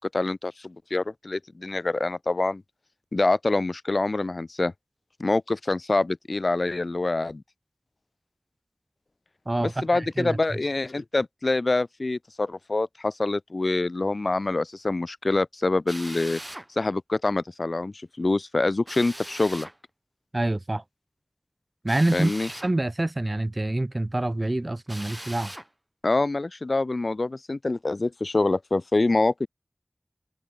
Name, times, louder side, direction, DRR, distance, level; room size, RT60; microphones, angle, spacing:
voice 1, 0.0-2.6 3.1-4.7 5.2-7.4 9.6-16.4 16.8-19.7 22.1-22.5 26.0-29.5, left 2 dB, 70° left, 0.9 m, -25 dB
voice 2, 9.5-10.4 20.3-20.8 21.8-25.5, right 1 dB, 40° right, 1.0 m, -26 dB
Drill, 15.9-16.7 18.9-19.8 21.9-22.8 24.9-25.7, right 1 dB, 20° right, 1.8 m, -40 dB
wide cardioid pair, 40°, 0 cm